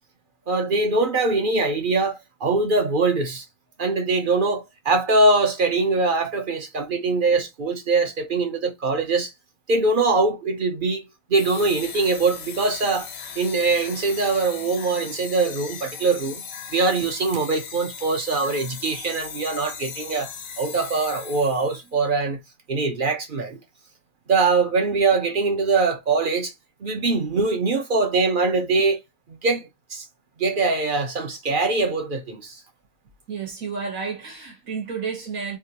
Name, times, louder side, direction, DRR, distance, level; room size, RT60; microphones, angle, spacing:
voice 1, 0.5-3.4 3.8-9.3 9.7-11.0 11.3-13.1 13.4-16.4 16.7-20.3 20.6-22.4 22.7-23.6 24.3-26.5 26.8-29.0 29.3-30.0 30.4-32.6, right 3 dB, 45° right, 0.9 m, -22 dB
sound 1, 11.3-21.9, left 6 dB, 80° left, 1.2 m, -38 dB
voice 2, 33.3-35.6, right 5 dB, 85° right, 2.0 m, -31 dB
3.7 x 2.9 x 2.8 m
omnidirectional pair, 1.4 m